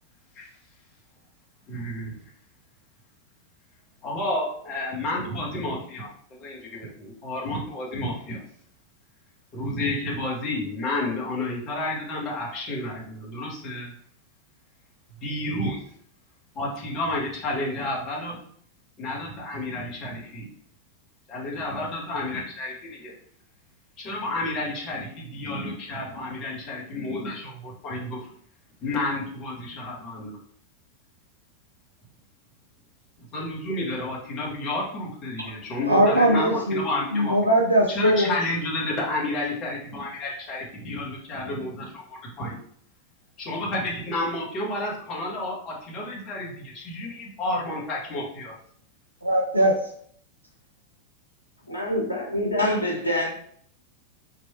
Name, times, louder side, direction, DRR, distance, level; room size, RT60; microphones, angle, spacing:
voice 1, 1.7-2.2 4.0-8.4 9.5-13.9 15.2-15.8 16.5-18.4 19.0-20.5 21.3-23.1 24.0-28.3 28.8-30.4 33.2-37.3 37.9-42.6 43.4-48.5, left 2 dB, 35° left, -4 dB, 1.3 m, -31 dB
voice 2, 35.8-36.8 37.1-38.3 49.2-49.9, right 1 dB, 85° right, 0 dB, 0.5 m, -20 dB
voice 3, 51.7-53.3, left 1 dB, 80° left, -2 dB, 1.0 m, -25 dB
3.1 x 2.6 x 4.2 m, 0.62 s
figure-of-eight pair, 90°, 0 cm